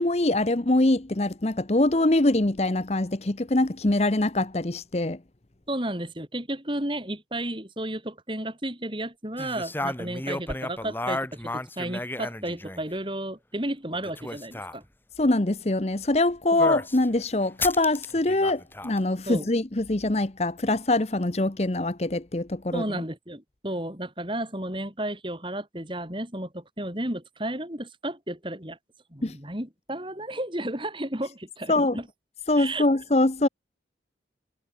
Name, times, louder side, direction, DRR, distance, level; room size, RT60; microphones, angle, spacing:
voice 1, 0.0-5.2 15.2-23.0 29.2-29.4 31.7-32.0 32.5-33.5, left 2 dB, 35° left, 0.9 m, -24 dB
voice 2, 5.7-14.8 16.5-16.6 19.3-19.5 22.7-28.8 29.1-32.1 32.6-32.8, right 1 dB, 25° right, 5.0 m, -33 dB
sound 1, 9.4-13.0 13.9-14.8 16.6-17.1 17.6-19.0, left 2 dB, 10° left, 2.1 m, -33 dB
head